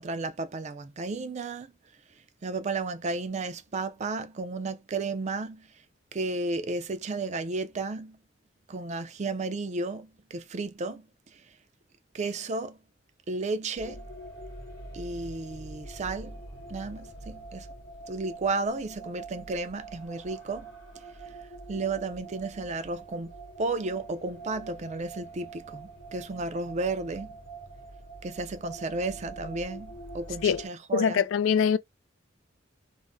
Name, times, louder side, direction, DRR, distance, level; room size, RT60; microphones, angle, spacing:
voice 1, 0.0-1.7 2.4-5.7 6.1-8.2 8.7-11.0 12.1-12.8 13.3-14.0 14.9-16.4 16.7-17.7 18.1-20.7 21.7-23.3 23.6-27.3 28.2-31.2, right 3 dB, 35° right, 0.4 m, -33 dB
sound 1, 13.8-30.7, right 3 dB, 55° left, 1.0 m, -44 dB
voice 2, 30.9-31.8, left 7 dB, 90° left, 0.3 m, -23 dB
2.5 x 2.0 x 3.5 m
head